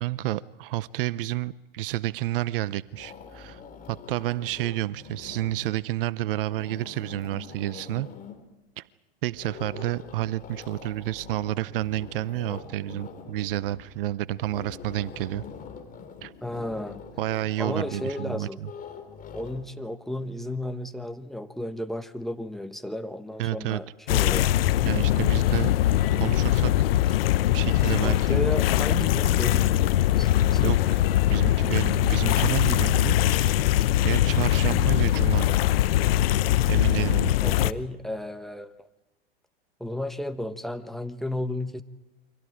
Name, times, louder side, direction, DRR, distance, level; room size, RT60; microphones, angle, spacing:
voice 1, 0.0-3.6 3.9-8.1 8.8-8.9 9.2-15.4 16.2-16.3 17.2-18.7 23.4-23.8 24.8-25.7 26.1-27.2 27.5-28.4 30.6-31.0 31.3-33.5 34.0-35.5 36.7-37.3, right 15 dB, 60° right, 19 dB, 0.7 m, -30 dB
sound 1, 2.1-2.6 2.8-5.9 6.3-8.5 9.3-19.6, left 6 dB, 25° left, 3.6 m, -44 dB
voice 2, 16.4-17.0 17.6-18.6 19.3-24.5 28.0-29.9 30.2-30.7 37.2-38.9 39.8-41.8, left 1 dB, ahead, 11 dB, 1.3 m, -33 dB
sound 2, 24.1-37.7, left 13 dB, 70° left, 0.9 m, -22 dB
29.0 x 24.5 x 5.0 m, 1.0 s
hypercardioid pair, 95°, 31 cm